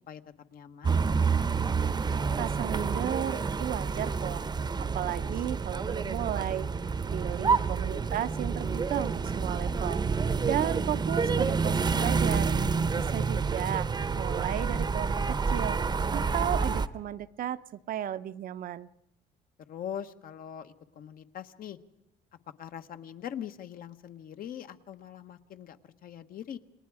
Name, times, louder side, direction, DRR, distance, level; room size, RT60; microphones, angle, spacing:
voice 1, 0.5-1.0 7.2-7.5 19.7-21.8 22.6-26.6, left 9 dB, 60° left, 9 dB, 1.3 m, -42 dB
sound 1, 0.8-16.9, right 5 dB, 25° right, 0.8 m, -28 dB
voice 2, 2.4-4.4 4.8-6.7 7.1-10.0 10.5-12.5 13.0-13.9 14.2-15.8 16.1-18.9, right 11 dB, 55° right, 12 dB, 0.7 m, -34 dB
29.0 x 19.5 x 4.9 m, 0.87 s
cardioid pair, 110°, 17 cm